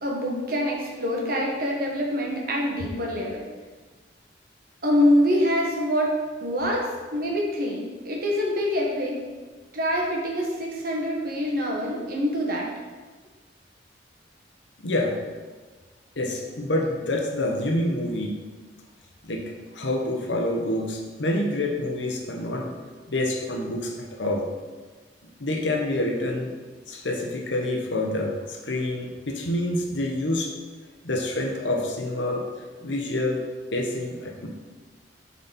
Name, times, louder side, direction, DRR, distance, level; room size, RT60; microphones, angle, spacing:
voice 1, 0.0-3.5 4.8-6.1 6.4-9.2 9.7-12.7, equal, 55° right, -2 dB, 1.4 m, -25 dB
voice 2, 14.8-15.1 16.2-18.4 19.2-22.7 23.1-24.5 25.4-26.5 26.9-30.5 31.0-32.4 32.8-33.4 33.7-34.5, left 1 dB, 90° left, 1 dB, 1.0 m, -27 dB
7.1 x 4.3 x 4.2 m, 1.3 s
head